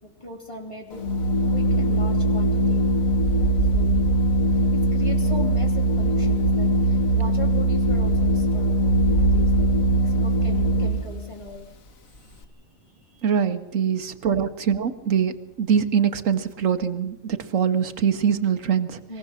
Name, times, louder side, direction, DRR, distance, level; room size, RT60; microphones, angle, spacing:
voice 1, 0.0-1.1 1.5-2.9 3.7-4.1 4.7-11.7 13.1-13.2 13.9-14.5 19.1-19.2, left 2 dB, 25° left, 1 dB, 3.1 m, -39 dB
Organ, 0.9-11.2, right 1 dB, 85° left, 1.7 m, -21 dB
voice 2, 13.2-19.0, right 7 dB, 75° right, 8 dB, 1.5 m, -23 dB
23.0 x 16.0 x 7.4 m, 1.0 s
omnidirectional pair, 1.4 m